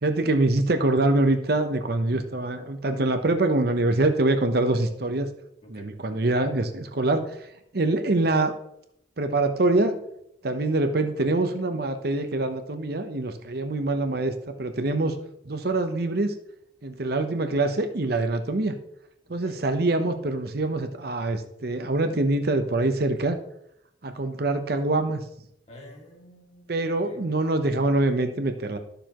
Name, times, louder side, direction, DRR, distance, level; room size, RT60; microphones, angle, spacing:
voice 1, 0.0-5.3 5.7-7.5 7.7-8.5 9.2-10.0 10.4-15.1 15.4-16.3 16.8-18.8 19.3-23.4 24.0-25.2 26.7-28.8, right 2 dB, 55° right, 7 dB, 0.8 m, -24 dB
voice 2, 5.6-5.9 19.4-19.6 25.7-27.3, left 1 dB, 35° left, -1 dB, 2.2 m, -48 dB
12.5 x 6.8 x 3.0 m, 0.75 s
head